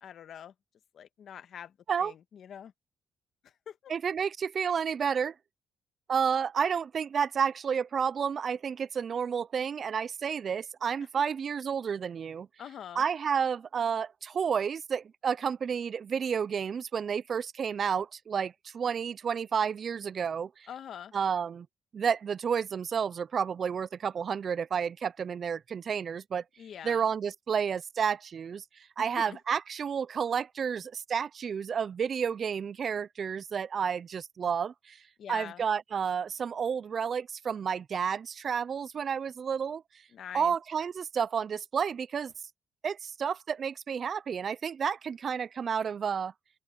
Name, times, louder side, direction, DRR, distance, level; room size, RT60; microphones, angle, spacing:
voice 1, 0.0-0.5 0.9-2.7 3.4-3.9 11.2-11.3 12.6-13.0 20.7-21.1 26.6-27.0 29.0-29.4 35.2-35.6 40.1-40.5, left 9 dB, 65° left, 1.5 m, -44 dB
voice 2, 3.9-5.3 6.1-12.5 13.0-20.7 21.1-21.7 21.9-26.4 26.8-35.0 35.3-39.8 40.3-42.3 42.8-46.3, right 7 dB, 50° right, 0.4 m, -31 dB
open air
cardioid pair, 90°, 0 cm